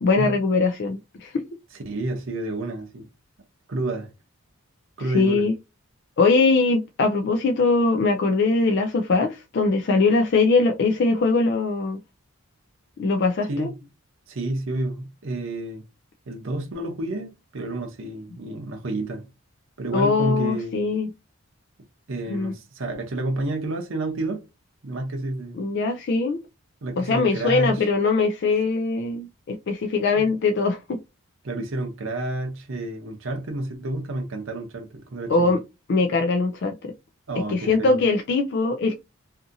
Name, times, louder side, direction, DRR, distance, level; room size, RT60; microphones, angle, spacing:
voice 1, 0.0-1.4 5.1-5.5 6.2-12.0 13.0-13.7 19.9-21.1 22.3-22.5 25.6-26.4 27.0-31.0 35.3-35.6 35.9-36.9 37.4-38.9, left 3 dB, 50° left, 0.3 m, -21 dB
voice 2, 1.7-3.1 3.7-4.1 5.0-5.5 13.5-13.7 14.3-15.8 16.3-19.3 19.8-20.9 22.1-24.4 24.8-25.6 26.8-27.8 30.1-30.2 31.4-35.6 37.3-38.0, right 2 dB, 60° right, 0.6 m, -30 dB
2.6 x 2.5 x 2.6 m
head